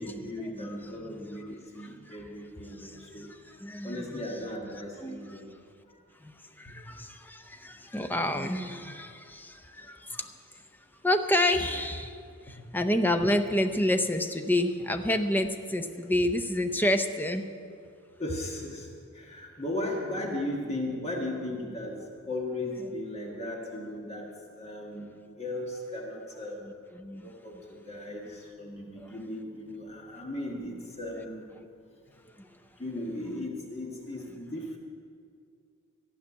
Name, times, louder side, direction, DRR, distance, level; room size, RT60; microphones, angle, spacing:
voice 1, 0.0-3.3 3.8-5.5 9.8-9.9 18.2-18.9 19.1-26.6 27.1-31.5 32.8-34.8, left 1 dB, 30° left, -1 dB, 1.6 m, -37 dB
voice 2, 0.6-0.9 1.2-1.3 3.6-4.2 5.0-5.4 6.2-6.3 6.6-10.3 11.0-12.2 12.7-17.5 26.6-27.2, left 1 dB, 10° left, 7 dB, 0.6 m, -28 dB
14.0 x 5.8 x 9.8 m, 2.2 s
head